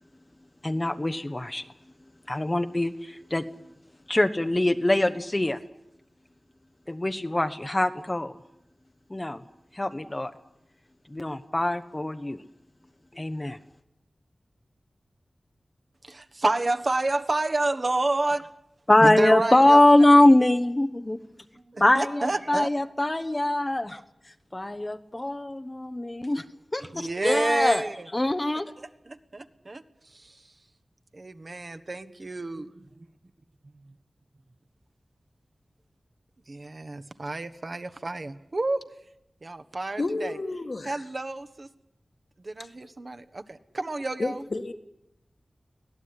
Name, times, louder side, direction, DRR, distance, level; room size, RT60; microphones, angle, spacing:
voice 1, 0.6-1.7 2.3-3.4 4.1-5.6 6.9-8.4 9.1-9.4 9.7-10.3 11.1-12.4 13.1-13.6 18.9-21.2 21.8-24.0 24.5-26.4 26.7-27.9 28.1-28.7, left 1 dB, 25° left, 7 dB, 1.0 m, -22 dB
voice 2, 16.0-18.5 19.0-19.8 21.7-22.7 26.9-28.1 28.8-29.8 30.1-30.4 31.1-33.0 36.5-38.8 39.4-40.4 40.8-41.7 42.4-44.4, right 2 dB, 45° right, 9 dB, 1.4 m, -29 dB
voice 3, 40.0-41.0 44.2-44.7, left 2 dB, 55° left, 6 dB, 1.9 m, -31 dB
24.5 x 17.0 x 9.8 m, 0.84 s
wide cardioid pair, 70°, 0 cm